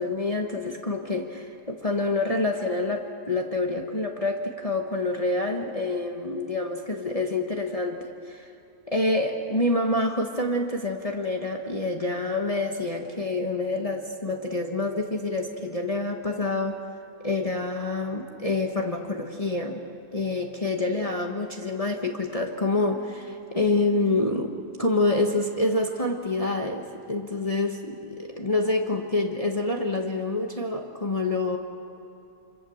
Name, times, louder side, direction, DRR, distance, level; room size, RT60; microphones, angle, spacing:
voice 1, 0.0-8.5 8.9-16.8 17.2-19.8 20.1-31.6, left 2 dB, 25° left, 2 dB, 1.5 m, -27 dB
27.0 x 26.0 x 7.3 m, 2.7 s
omnidirectional pair, 1.7 m